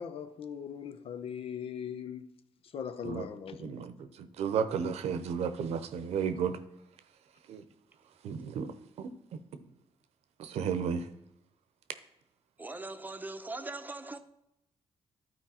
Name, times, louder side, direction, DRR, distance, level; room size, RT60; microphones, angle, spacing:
voice 1, 0.0-2.3 2.7-3.8, left 7 dB, 65° left, 0.7 m, -40 dB
voice 2, 3.6-6.6 7.5-7.6 8.2-8.7 9.0-9.1 10.4-11.1, right 7 dB, 85° right, 0.8 m, -33 dB
voice 3, 12.6-14.2, right 2 dB, 15° right, 0.8 m, -40 dB
11.5 x 4.6 x 4.3 m
cardioid pair, 85°, 11 cm